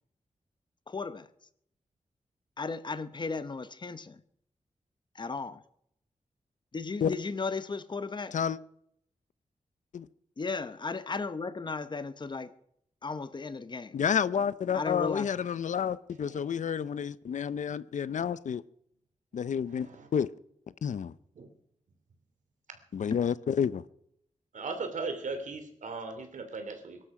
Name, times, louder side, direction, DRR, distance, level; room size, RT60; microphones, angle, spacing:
voice 1, 0.9-1.3 2.6-4.2 5.1-5.6 6.7-8.3 10.4-12.5 13.0-14.0 14.7-15.3 23.1-23.3, left 4 dB, 35° left, 13 dB, 0.9 m, -35 dB
voice 2, 13.9-18.6 19.3-20.3 20.8-21.1 22.9-23.8, left 7 dB, 80° left, 17 dB, 0.6 m, -30 dB
voice 3, 19.6-20.1 21.4-21.5 24.5-27.0, right 4 dB, 85° right, 7 dB, 2.9 m, -38 dB
23.0 x 12.5 x 4.9 m, 0.73 s
wide cardioid pair, 125°, 13 cm